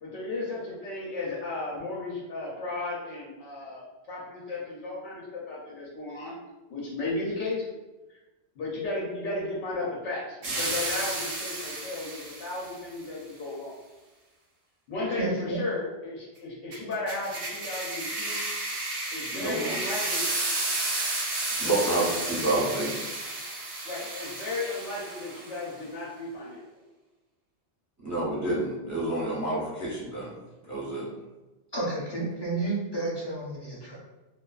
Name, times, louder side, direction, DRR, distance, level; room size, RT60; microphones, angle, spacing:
voice 1, 0.0-6.3 6.7-7.7 8.6-13.7 14.9-18.4 19.1-20.2 21.6-21.9 23.8-26.6, left 2 dB, 85° left, -5 dB, 1.0 m, -34 dB
sound 1, 10.4-12.8 16.7-25.6, right 2 dB, 80° right, 1.0 m, -32 dB
voice 2, 15.2-15.6 31.7-34.0, right 2 dB, 30° left, -7 dB, 0.6 m, -31 dB
voice 3, 19.3-19.7 21.6-23.0 28.0-30.3 30.6-31.1, right 2 dB, 25° right, -7 dB, 0.4 m, -28 dB
2.5 x 2.3 x 2.3 m, 1.1 s
omnidirectional pair, 1.2 m